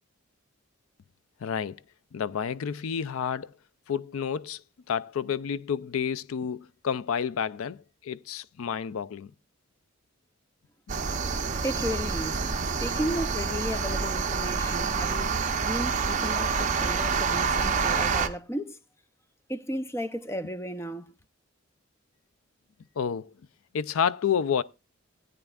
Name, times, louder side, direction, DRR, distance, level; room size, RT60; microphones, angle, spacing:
voice 1, 1.4-1.8 2.1-3.5 3.9-4.6 4.9-9.3 23.0-23.3 23.7-24.6, left 7 dB, 80° left, 0.4 m, -30 dB
sound 1, 10.9-18.3, right 5 dB, 35° right, 0.7 m, -27 dB
voice 2, 11.6-12.5 12.8-18.8 19.5-21.1, equal, 10° left, 0.5 m, -34 dB
17.5 x 9.1 x 2.4 m
head